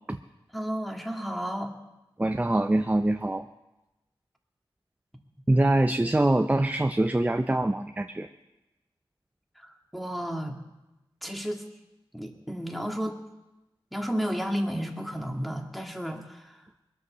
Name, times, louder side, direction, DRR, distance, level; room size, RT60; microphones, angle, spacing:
voice 1, 0.5-1.7 5.5-5.7 9.6-10.6 11.2-11.7 12.1-13.2 13.9-16.6, equal, ahead, 2 dB, 2.0 m, -32 dB
voice 2, 2.2-3.5 5.5-8.3, right 1 dB, 15° right, 8 dB, 0.6 m, -24 dB
21.5 x 8.2 x 6.8 m, 1.0 s
wide cardioid pair, 55°, 10 cm